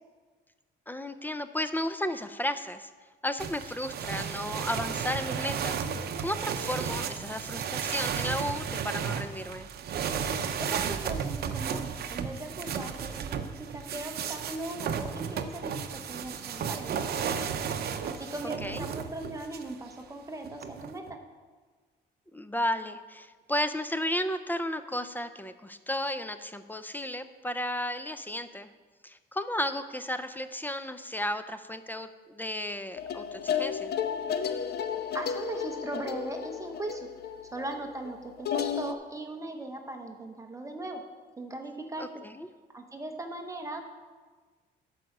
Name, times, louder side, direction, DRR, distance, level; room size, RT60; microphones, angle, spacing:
voice 1, 0.9-2.9 3.2-9.7 18.6-18.8 22.3-28.7 29.0-33.9 42.0-42.5, left 1 dB, 10° left, 11 dB, 0.4 m, -33 dB
sound 1, 3.4-19.7 20.4-21.1, right 7 dB, 55° right, 0.7 m, -34 dB
voice 2, 10.6-17.4 18.0-21.2 35.1-37.1 37.5-41.0 41.4-42.1 42.7-43.9, right 2 dB, 15° right, 4 dB, 0.8 m, -39 dB
sound 2, 33.0-38.9, left 7 dB, 60° left, 0.6 m, -33 dB
11.5 x 4.9 x 6.4 m, 1.4 s
cardioid pair, 125°, 19 cm